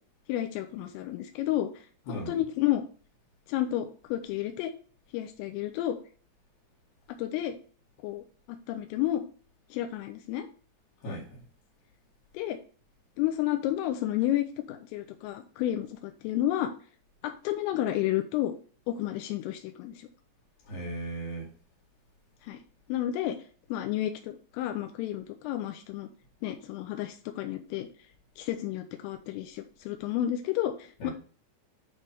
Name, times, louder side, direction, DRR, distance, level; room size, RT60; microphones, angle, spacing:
voice 1, 0.3-2.9 3.5-4.7 5.1-6.0 7.1-7.6 8.0-9.2 9.7-10.5 12.3-12.6 13.2-16.7 17.2-18.6 18.9-20.1 22.4-22.6 22.9-23.4 23.7-26.1 26.4-27.9 28.4-31.1, left 13 dB, 85° left, 3.2 m, -31 dB
voice 2, 2.1-2.4 11.0-11.4 20.6-21.5 31.0-31.1, right 1 dB, 60° left, 3.2 m, -37 dB
8.7 x 3.3 x 5.3 m
omnidirectional pair, 5.8 m